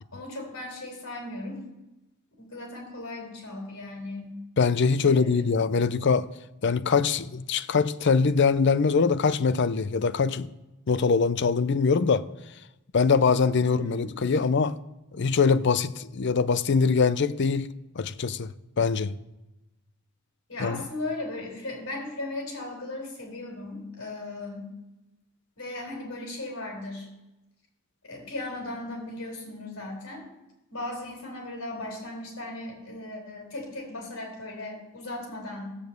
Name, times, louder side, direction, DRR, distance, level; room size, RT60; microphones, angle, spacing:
voice 1, 0.1-1.7 2.4-4.3 5.0-5.4 13.6-14.4 20.5-24.7 25.6-27.1 28.0-30.2 30.7-35.8, left 2 dB, 70° left, 4.2 m, -37 dB
voice 2, 4.6-6.3 6.6-10.5 10.9-12.3 12.9-14.8 15.1-17.7 18.0-18.5 18.8-19.1 20.6-20.8, left 5 dB, 55° left, 0.5 m, -23 dB
15.5 x 5.1 x 7.8 m
head